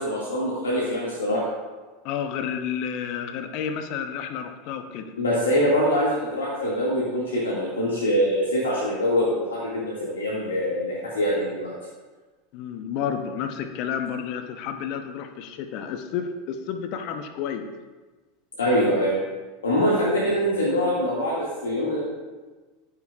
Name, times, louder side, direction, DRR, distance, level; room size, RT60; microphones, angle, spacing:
voice 1, 0.0-1.4 5.2-11.7 18.6-19.2 19.6-22.0, equal, 75° left, -6 dB, 2.1 m, -24 dB
voice 2, 2.0-5.1 12.5-17.7, left 7 dB, 50° left, 7 dB, 0.9 m, -31 dB
11.5 x 10.5 x 2.4 m, 1.3 s
figure-of-eight pair, 80°, 0 cm